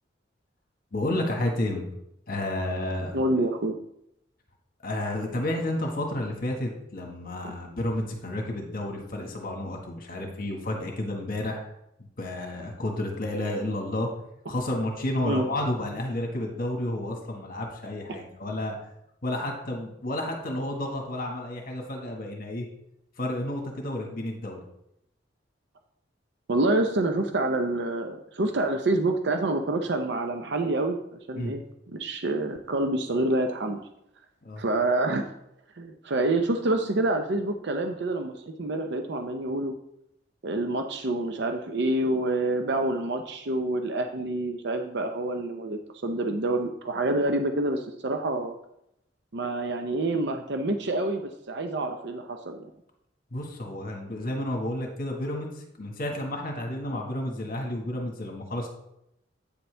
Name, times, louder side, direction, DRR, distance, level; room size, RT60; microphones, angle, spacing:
voice 1, 0.9-1.8 2.3-3.2 4.8-11.7 12.2-14.1 14.5-18.8 19.2-22.7 23.2-24.6 31.4-31.5 34.4-34.6 53.3-58.7, left 1 dB, 50° left, 1 dB, 1.5 m, -31 dB
voice 2, 3.1-3.8 7.4-7.5 15.2-15.4 26.5-31.0 31.3-31.6 31.9-33.8 34.6-35.3 35.8-39.7 40.4-48.6 49.3-52.7, right 2 dB, 65° right, 5 dB, 0.6 m, -27 dB
8.7 x 6.8 x 3.3 m, 0.80 s
head